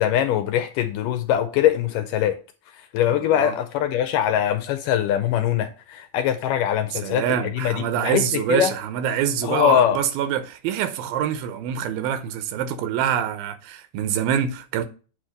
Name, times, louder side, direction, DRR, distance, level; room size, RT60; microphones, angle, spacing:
voice 1, 0.0-2.4 2.9-7.7 8.0-8.7 9.4-10.0, left 11 dB, 75° left, 2.1 m, -22 dB
voice 2, 7.0-14.9, right 9 dB, 80° right, 2.6 m, -25 dB
8.4 x 3.0 x 6.4 m
omnidirectional pair, 4.2 m